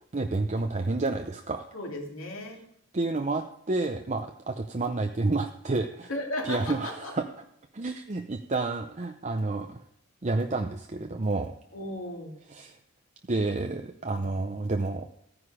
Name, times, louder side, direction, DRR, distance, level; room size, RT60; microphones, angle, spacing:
voice 1, 0.1-1.6 2.9-6.1 6.4-7.2 7.7-9.8 10.2-11.5 12.5-12.8 13.3-15.1, right 2 dB, 30° right, 5 dB, 0.6 m, -29 dB
voice 2, 1.7-2.7 6.1-7.1 11.7-12.3, left 1 dB, 65° left, 1 dB, 2.9 m, -35 dB
15.0 x 9.7 x 5.0 m, 0.71 s
head